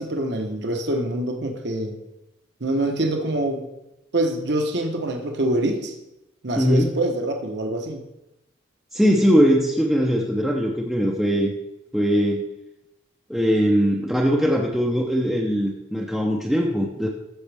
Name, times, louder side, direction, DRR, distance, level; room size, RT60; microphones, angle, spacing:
voice 1, 0.0-2.0 2.6-3.7 4.1-5.9 6.4-8.0, right 1 dB, 55° right, 3 dB, 1.1 m, -25 dB
voice 2, 6.6-6.9 8.9-11.5 11.9-12.4 13.3-17.1, equal, ahead, -2 dB, 0.7 m, -20 dB
13.5 x 7.0 x 3.4 m, 0.92 s
head